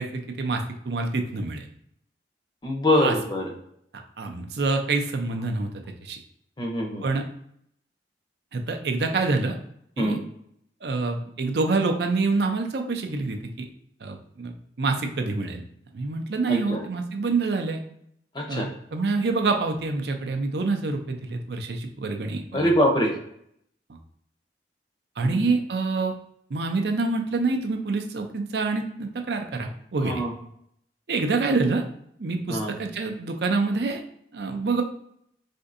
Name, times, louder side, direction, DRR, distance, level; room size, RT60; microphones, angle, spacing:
voice 1, 0.0-1.7 3.0-3.1 3.9-5.7 6.0-6.2 7.0-7.2 8.5-9.6 10.0-10.2 10.8-13.7 14.0-15.6 15.9-17.8 18.5-22.7 25.2-26.1 26.5-30.2 31.1-31.8 32.2-34.0 34.3-34.8, right 3 dB, 65° right, 4 dB, 0.5 m, -26 dB
voice 2, 2.6-3.5 6.6-7.0 10.0-10.2 16.5-16.8 18.3-18.7 22.5-23.1 25.2-25.5 30.0-30.3 32.5-32.7, equal, 25° left, 2 dB, 0.5 m, -24 dB
4.3 x 2.6 x 2.5 m, 0.71 s
head